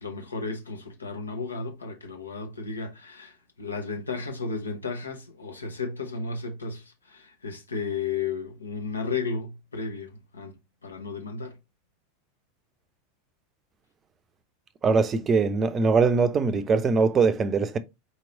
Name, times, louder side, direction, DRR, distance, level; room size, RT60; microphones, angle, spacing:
voice 1, 0.0-10.6 10.8-11.5, left 4 dB, 80° left, 1.0 m, -34 dB
voice 2, 14.8-17.8, right 4 dB, 25° right, 0.6 m, -22 dB
4.4 x 3.0 x 3.9 m
figure-of-eight pair, 85°, 0 cm